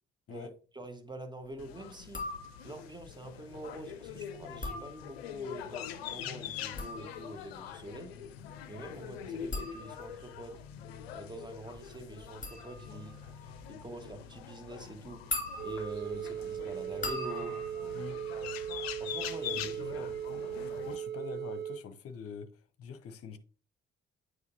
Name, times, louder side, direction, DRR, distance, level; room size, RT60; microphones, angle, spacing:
voice 1, 0.3-2.3 2.6-8.1 8.7-10.6 11.1-15.3 15.6-18.0 18.3-18.5 19.0-20.2, right 1 dB, 15° right, 1.4 m, -45 dB
sound 1, 1.6-21.0, left 9 dB, 80° left, 0.5 m, -44 dB
sound 2, 2.0-2.9 4.4-5.5 6.5-19.2 19.5-20.0, left 2 dB, 25° left, 2.2 m, -43 dB
sound 3, 15.6-21.8, right 9 dB, 35° right, 0.8 m, -38 dB
voice 2, 20.9-23.4, left 6 dB, 50° left, 0.9 m, -44 dB
8.2 x 4.7 x 2.7 m
figure-of-eight pair, 40°, 30 cm